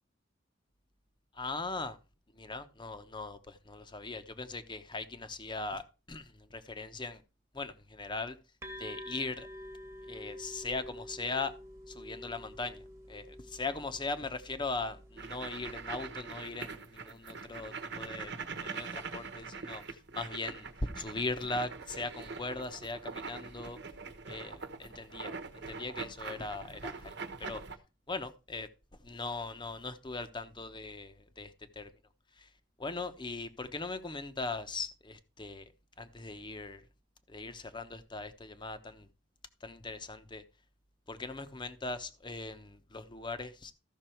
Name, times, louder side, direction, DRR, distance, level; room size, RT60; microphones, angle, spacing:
voice 1, 1.3-2.0 2.3-5.8 6.1-7.2 7.5-8.4 8.8-9.5 10.1-11.5 11.9-18.3 18.6-20.7 21.0-23.8 24.2-27.1 27.4-27.6 28.1-28.7 29.0-31.9 32.4-32.5 32.8-35.7 36.0-36.8 37.3-39.1 39.6-40.4 41.1-43.7, left 3 dB, 25° left, 0.9 m, -39 dB
sound 1, 8.6-16.1, left 1 dB, 15° right, 1.3 m, -48 dB
sound 2, 15.2-27.8, right 4 dB, 65° right, 1.1 m, -43 dB
14.0 x 5.9 x 4.5 m
head